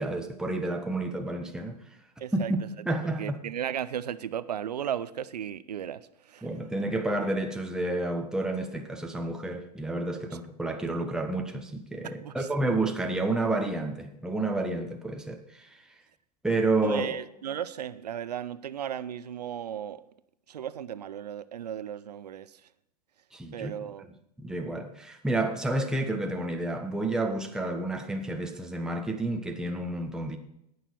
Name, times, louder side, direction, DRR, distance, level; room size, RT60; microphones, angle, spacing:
voice 1, 0.0-1.7 2.3-3.4 6.4-15.7 16.4-17.2 23.3-23.7 24.4-30.4, right 2 dB, 5° right, 1.4 m, -30 dB
voice 2, 2.2-2.5 3.2-6.5 10.2-10.4 12.0-12.5 16.8-20.0 20.5-22.6 23.5-24.1, right 9 dB, 75° right, 0.7 m, -35 dB
18.5 x 6.7 x 4.6 m
hypercardioid pair, 100°, 21 cm